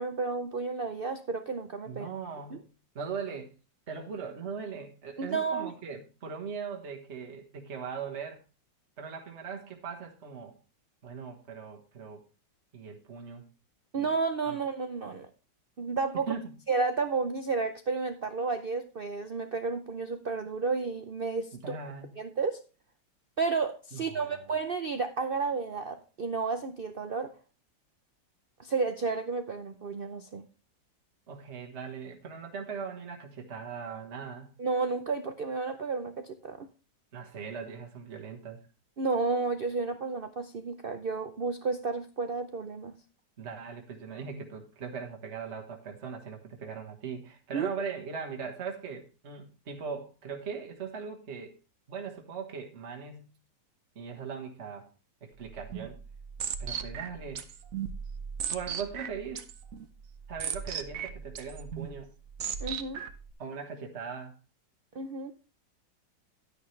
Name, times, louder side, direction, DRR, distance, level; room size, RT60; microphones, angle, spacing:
voice 1, 0.0-2.1 2.5-2.6 5.2-5.7 13.9-15.3 15.8-16.3 16.7-21.8 22.2-22.6 23.4-27.3 28.6-30.4 34.6-36.7 39.0-42.9 47.5-47.7 62.6-63.0 64.9-65.3, right 4 dB, 80° right, 8 dB, 0.5 m, -32 dB
voice 2, 1.9-2.7 3.0-3.5 3.9-8.4 9.0-10.6 11.0-12.2 12.7-13.5 14.0-14.1 14.5-14.6 16.3-16.6 21.5-22.2 23.9-24.6 31.3-34.5 37.1-38.6 43.4-51.6 51.9-53.3 54.0-54.9 55.2-56.0 56.6-57.5 58.5-59.4 60.3-62.1 63.4-64.4, right 6 dB, 40° right, 2 dB, 1.6 m, -40 dB
sound 1, 55.4-63.3, right 7 dB, 55° right, 1.1 m, -38 dB
11.0 x 9.8 x 3.2 m, 0.33 s
omnidirectional pair, 2.0 m